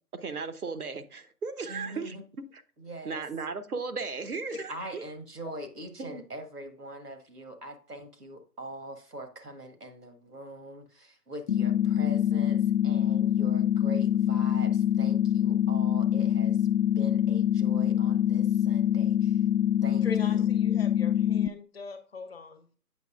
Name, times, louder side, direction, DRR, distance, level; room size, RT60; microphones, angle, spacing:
voice 1, 0.1-2.2 2.5-2.6 3.0-5.0 6.0-6.3, right 4 dB, 70° right, 1.0 m, -36 dB
voice 2, 1.7-2.2 2.8-3.2 4.7-16.6 17.0-19.4 19.8-20.4, right 1 dB, 90° right, 1.7 m, -43 dB
sound 1, 11.5-21.5, left 10 dB, 70° left, 0.6 m, -25 dB
voice 3, 20.0-22.7, left 3 dB, 40° left, 1.0 m, -40 dB
8.1 x 6.4 x 2.5 m
figure-of-eight pair, 145°, 46 cm